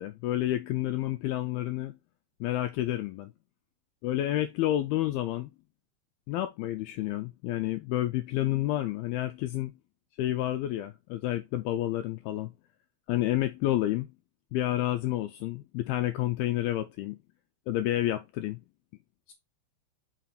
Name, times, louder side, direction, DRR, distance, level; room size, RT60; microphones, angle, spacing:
voice 1, 0.0-2.0 2.4-3.3 4.0-5.5 6.3-9.7 10.2-12.5 13.1-14.1 14.5-17.2 17.7-18.6 19.3-19.4, left 14 dB, 85° left, 2.2 m, -29 dB
5.8 x 5.8 x 4.2 m
omnidirectional pair, 5.0 m